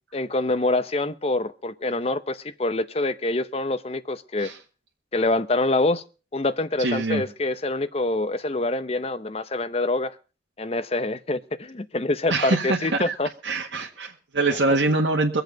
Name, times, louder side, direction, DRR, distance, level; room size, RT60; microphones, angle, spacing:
voice 1, 0.1-4.5 5.1-6.0 6.3-10.2 10.6-13.3, left 2 dB, 35° left, 0.7 m, -25 dB
voice 2, 6.8-7.2 12.3-13.1 13.4-15.4, right 3 dB, 90° right, 1.7 m, -24 dB
23.0 x 7.9 x 5.2 m
head